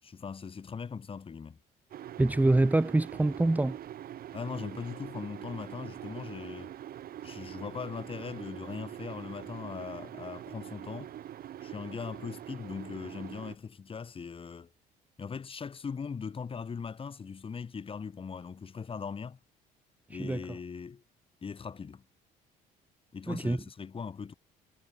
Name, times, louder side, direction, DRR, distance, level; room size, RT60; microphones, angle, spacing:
voice 1, 0.0-1.6 4.3-6.7 7.2-11.1 11.6-14.7 15.2-19.4 20.1-21.0 21.4-22.0 23.1-24.3, left 6 dB, 30° left, 5.1 m, -40 dB
Kettle Boiling, 1.9-13.6, right 11 dB, 60° right, 6.4 m, -44 dB
voice 2, 2.2-3.8 20.2-20.4 23.3-23.6, right 2 dB, 10° right, 1.4 m, -25 dB
cardioid pair, 110°, 17 cm